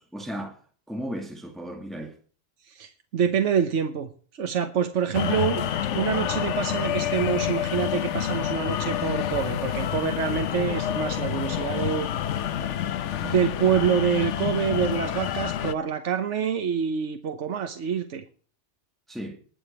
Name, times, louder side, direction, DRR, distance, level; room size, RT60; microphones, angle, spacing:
voice 1, 0.1-0.6 0.9-2.2 12.5-12.6 19.1-19.4, equal, ahead, 1.9 m, -35 dB
voice 2, 2.6-12.1 13.2-18.2, right 7 dB, 85° right, 1.4 m, -26 dB
sound 1, 5.1-15.7, left 10 dB, 80° left, 1.0 m, -28 dB
20.5 x 6.9 x 4.4 m
omnidirectional pair, 1.2 m